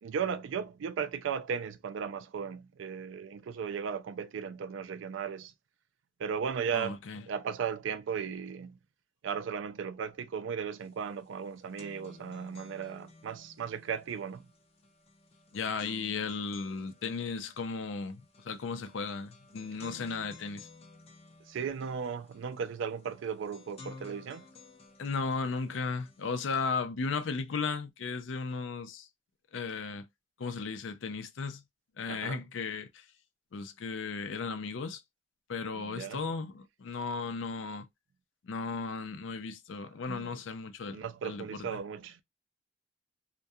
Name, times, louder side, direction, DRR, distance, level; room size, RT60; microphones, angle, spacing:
voice 1, 0.0-5.5 6.2-7.0 7.2-8.8 9.2-14.5 21.5-24.4 32.1-32.4 35.7-36.2 40.1-40.3 40.9-42.2, right 7 dB, 80° right, 0.4 m, -36 dB
voice 2, 6.7-7.2 15.5-20.7 25.0-29.1 29.5-30.1 30.4-31.6 32.0-33.1 33.5-35.0 35.5-37.9 38.4-41.8, left 4 dB, 85° left, 0.5 m, -35 dB
sound 1, 10.8-10.9 11.2-26.8, left 3 dB, 35° left, 0.5 m, -55 dB
2.3 x 2.2 x 2.6 m
head